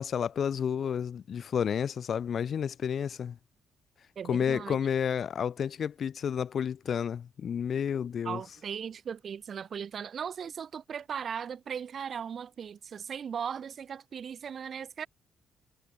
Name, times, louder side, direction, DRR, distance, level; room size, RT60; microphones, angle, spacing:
voice 1, 0.0-3.4 4.3-8.4, left 8 dB, 55° left, 0.5 m, -31 dB
voice 2, 4.2-4.8 8.2-15.1, right 7 dB, 50° right, 2.1 m, -38 dB
cardioid pair, 90°, 0 cm